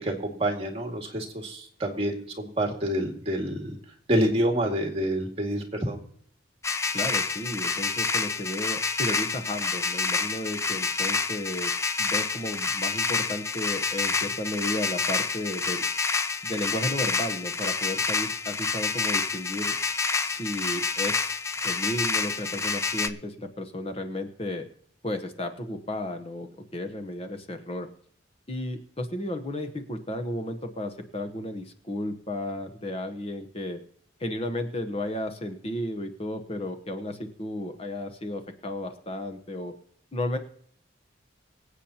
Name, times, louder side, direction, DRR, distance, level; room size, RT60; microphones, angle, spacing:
voice 1, 0.0-3.8 4.1-6.0, right 1 dB, 30° right, 2 dB, 2.1 m, -27 dB
sound 1, 6.6-23.1, left 4 dB, 15° left, 0.4 m, -28 dB
voice 2, 6.9-15.8 16.4-19.7 20.2-24.6 25.0-26.5 26.7-27.9 28.5-33.8 34.2-39.7 40.1-40.4, left 1 dB, 30° left, 6 dB, 0.9 m, -33 dB
24.5 x 8.2 x 2.9 m, 0.62 s
head